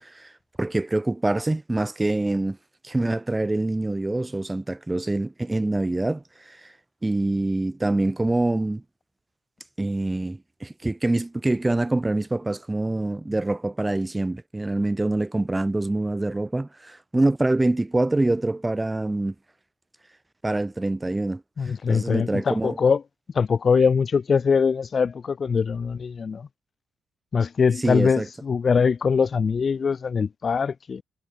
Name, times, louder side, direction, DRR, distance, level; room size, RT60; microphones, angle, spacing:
voice 1, 0.0-0.3 0.6-2.6 2.8-6.7 7.0-8.8 9.8-19.3 20.4-21.4 21.9-22.8 27.8-28.3, right 2 dB, 15° right, 4.9 m, -25 dB
voice 2, 21.6-23.0 23.3-26.5 27.3-31.0, left 5 dB, 40° left, 0.6 m, -22 dB
cardioid pair, 90°, 0 cm